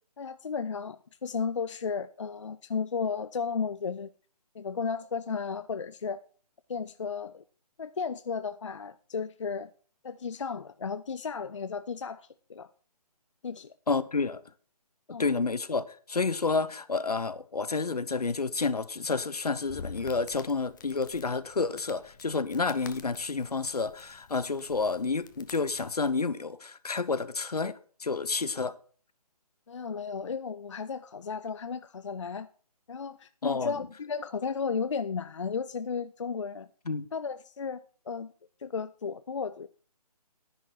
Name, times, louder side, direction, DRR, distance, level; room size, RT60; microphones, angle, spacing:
voice 1, 0.2-4.1 4.5-6.2 6.7-7.4 7.8-9.7 10.0-12.7 13.4-13.7 15.1-15.2 29.7-32.5 32.9-36.7 37.1-37.8 38.1-38.3 38.6-39.7, left 5 dB, 50° left, 0.4 m, -34 dB
voice 2, 13.9-14.4 15.2-28.7 33.4-33.9 36.9-37.1, left 4 dB, 70° left, 0.9 m, -30 dB
Crackle, 19.4-26.1, left 5 dB, 30° left, 0.8 m, -49 dB
10.5 x 10.0 x 4.3 m
figure-of-eight pair, 150°, 20 cm